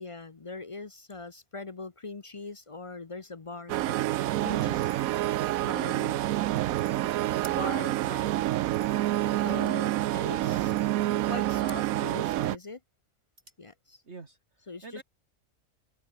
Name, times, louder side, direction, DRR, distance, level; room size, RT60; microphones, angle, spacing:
voice 1, 0.0-4.0 4.4-5.0 5.6-6.3 7.5-8.3 9.4-10.7 11.2-12.8 13.6-14.0 14.7-15.0, left 3 dB, 30° left, 0.6 m, -41 dB
sound 1, 3.7-12.6, right 15 dB, 80° right, 1.0 m, -28 dB
sound 2, 13.3-13.7, right 1 dB, 30° right, 7.8 m, -53 dB
voice 2, 14.0-15.0, right 4 dB, 50° right, 2.4 m, -48 dB
open air
omnidirectional pair, 1.4 m